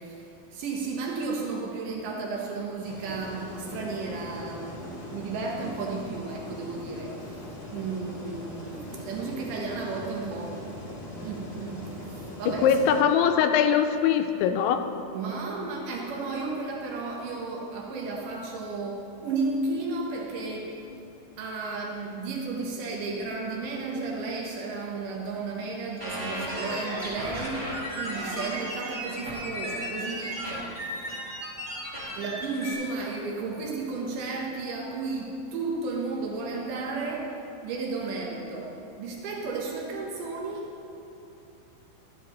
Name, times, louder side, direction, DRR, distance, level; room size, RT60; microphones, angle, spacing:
voice 1, 0.0-12.7 15.1-20.7 21.4-30.8 32.1-37.3 37.6-40.7, right 3 dB, 80° right, -2 dB, 1.8 m, -33 dB
sound 1, 2.8-13.0, left 1 dB, 40° left, 1.7 m, -41 dB
voice 2, 12.5-14.8, left 8 dB, 85° left, 7 dB, 2.8 m, -22 dB
sound 2, 26.0-32.7, equal, 55° right, 0.5 m, -35 dB
13.0 x 9.9 x 3.0 m, 2.9 s
omnidirectional pair, 5.3 m